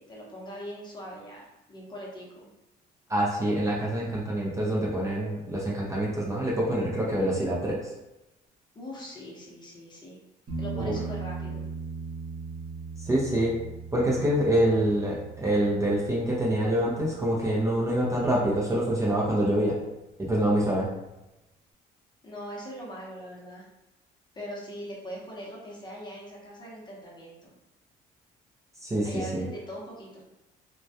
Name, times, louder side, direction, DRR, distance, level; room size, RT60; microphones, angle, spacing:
voice 1, 0.0-2.5 8.7-10.2 10.6-11.6 22.2-23.6 24.3-27.5 29.0-30.2, equal, 25° left, -4 dB, 0.7 m, -41 dB
voice 2, 3.1-7.9 10.8-10.9 13.0-13.6 13.9-19.8 20.2-20.9 28.8-29.4, right 1 dB, 20° right, -5 dB, 0.5 m, -26 dB
sound 1, 10.5-18.1 21.1-21.2, right 4 dB, 50° right, 0.7 m, -39 dB
2.2 x 2.1 x 2.7 m, 0.99 s
cardioid pair, 110°, 17 cm